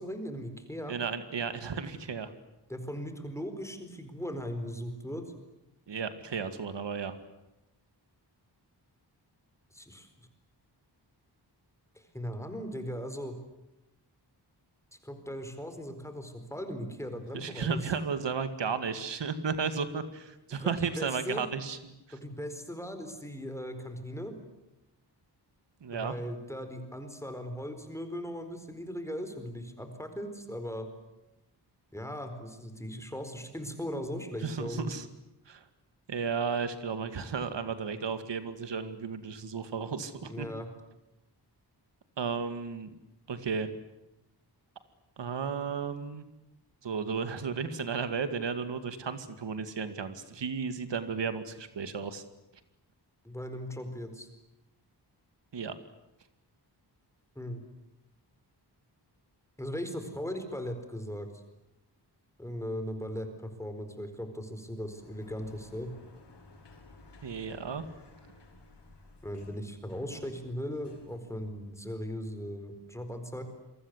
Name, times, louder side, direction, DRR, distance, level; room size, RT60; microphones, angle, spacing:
voice 1, 0.0-1.0 2.7-5.2 9.7-10.1 11.9-13.4 15.0-17.8 20.5-21.4 22.1-24.3 25.9-30.9 31.9-34.9 40.2-40.7 53.2-54.3 57.4-57.6 59.6-61.4 62.4-65.9 69.2-73.4, equal, 5° left, 7 dB, 4.4 m, -38 dB
voice 2, 0.9-2.3 5.9-7.1 17.3-21.9 25.8-26.1 34.4-35.1 35.5-35.6 36.1-40.5 42.2-42.9 43.3-43.7 45.2-46.2 46.8-52.2 55.5-55.7 67.2-67.8, right 5 dB, 85° right, 10 dB, 2.3 m, -34 dB
Sliding door, 64.8-71.9, left 2 dB, 75° left, 6.3 m, -55 dB
28.5 x 23.5 x 8.2 m, 0.91 s
wide cardioid pair, 155°, 42 cm